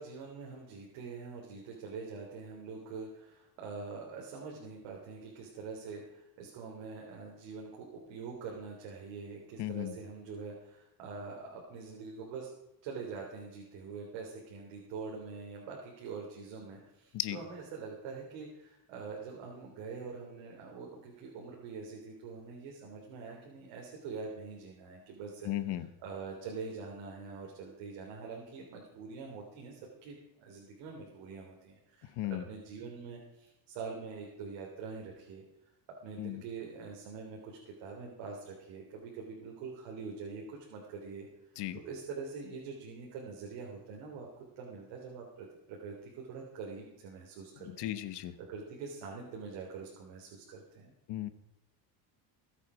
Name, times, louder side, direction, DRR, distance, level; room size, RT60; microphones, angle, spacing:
voice 1, 0.0-12.5 12.8-25.5 26.0-35.4 36.0-41.3 41.7-47.9 48.4-50.9, right 5 dB, 80° right, -2 dB, 3.4 m, -44 dB
voice 2, 9.6-10.0 17.1-17.4 25.4-25.9 32.2-32.4 36.2-36.4 41.6-41.8 47.6-48.3 51.1-51.3, left 14 dB, 65° left, 12 dB, 1.3 m, -36 dB
22.0 x 8.5 x 5.0 m, 0.95 s
cardioid pair, 125°, 44 cm